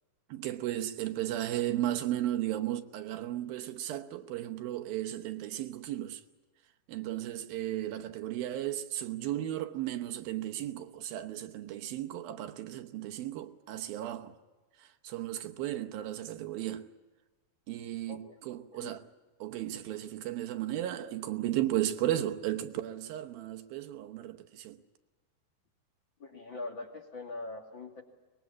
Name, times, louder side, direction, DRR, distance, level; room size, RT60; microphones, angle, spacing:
voice 1, 0.3-6.2 6.9-14.4 15.0-16.8 17.7-19.0 19.4-24.8, right 13 dB, 75° right, 2.8 m, -35 dB
voice 2, 26.2-28.0, left 3 dB, 35° left, 2.7 m, -42 dB
23.5 x 21.0 x 8.6 m
omnidirectional pair, 4.3 m